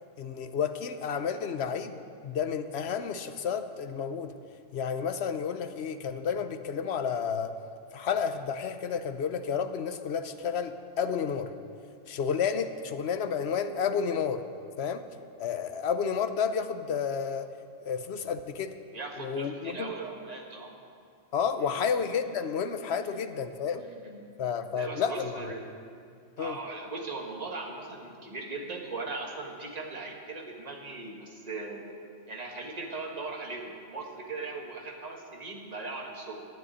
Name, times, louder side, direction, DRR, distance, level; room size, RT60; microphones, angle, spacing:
voice 1, 0.2-4.3 4.7-7.6 7.9-11.5 12.1-14.4 14.8-15.0 15.4-17.5 17.8-18.7 19.2-19.9 21.3-23.8 24.4-25.4 26.4-26.6, left 6 dB, 60° left, 9 dB, 0.9 m, -31 dB
voice 2, 18.9-20.7 21.6-21.8 23.1-23.2 23.8-24.2 24.7-25.6 26.4-31.8 32.3-36.5, right 3 dB, 30° right, 0 dB, 1.6 m, -39 dB
12.0 x 7.9 x 9.9 m, 2.3 s
omnidirectional pair, 1.3 m